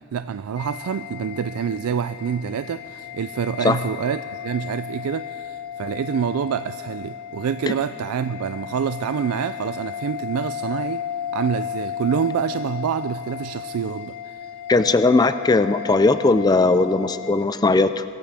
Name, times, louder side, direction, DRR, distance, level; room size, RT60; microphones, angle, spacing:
voice 1, 0.1-11.0 11.3-14.5, right 7 dB, 80° right, 11 dB, 0.4 m, -26 dB
sound 1, 0.6-17.5, left 9 dB, 85° left, 0.8 m, -34 dB
voice 2, 14.7-18.0, left 3 dB, 20° left, 12 dB, 0.4 m, -18 dB
23.5 x 13.5 x 3.5 m, 2.7 s
head